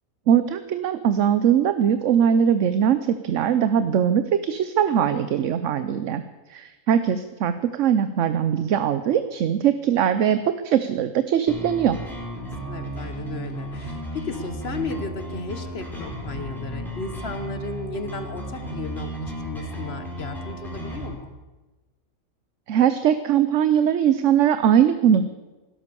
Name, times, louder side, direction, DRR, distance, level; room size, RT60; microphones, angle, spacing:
voice 1, 0.3-6.2 6.5-12.0 22.7-25.2, right 9 dB, 70° right, 11 dB, 1.0 m, -21 dB
sound 1, 11.5-21.1, right 1 dB, ahead, 4.3 m, -34 dB
voice 2, 12.7-21.3, left 4 dB, 50° left, 9 dB, 1.4 m, -34 dB
16.5 x 12.5 x 6.9 m, 1.2 s
omnidirectional pair, 1.4 m